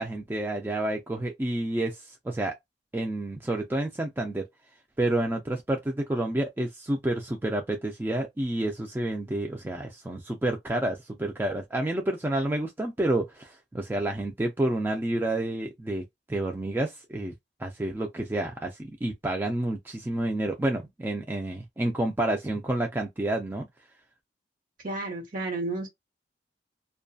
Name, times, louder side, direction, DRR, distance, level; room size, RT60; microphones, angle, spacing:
voice 1, 0.0-2.5 2.9-4.5 5.0-16.0 16.3-17.3 17.6-23.7, right 1 dB, 10° right, 0.4 m, -29 dB
voice 2, 24.8-25.9, right 2 dB, 50° right, 1.1 m, -31 dB
2.6 x 2.3 x 2.4 m
head